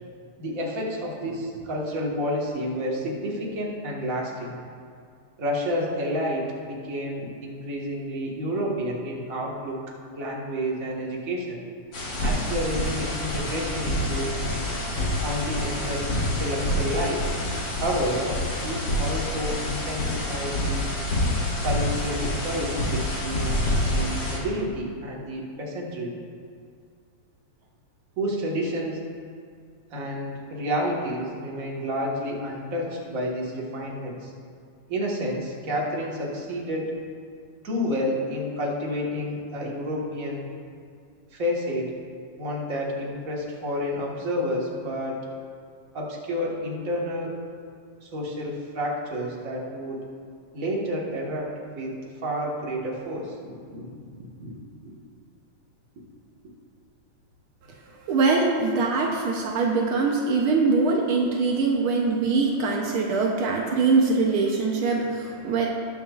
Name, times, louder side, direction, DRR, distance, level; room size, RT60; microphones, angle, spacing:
voice 1, 0.4-4.5 5.4-9.8 10.2-11.6 12.2-14.4 15.2-17.3 17.8-20.9 21.6-23.6 23.9-26.1 28.2-29.1 29.9-34.3 34.9-36.9 37.6-40.5 41.3-41.9 42.4-45.2 45.9-47.4 48.0-50.1 50.5-54.0 54.4-54.9, equal, 40° right, -3 dB, 1.4 m, -30 dB
sound 1, 11.9-24.4, left 1 dB, 45° left, 2.1 m, -27 dB
voice 2, 58.1-65.7, right 4 dB, 90° right, 0 dB, 1.1 m, -23 dB
19.5 x 7.1 x 2.4 m, 2.2 s
omnidirectional pair, 3.4 m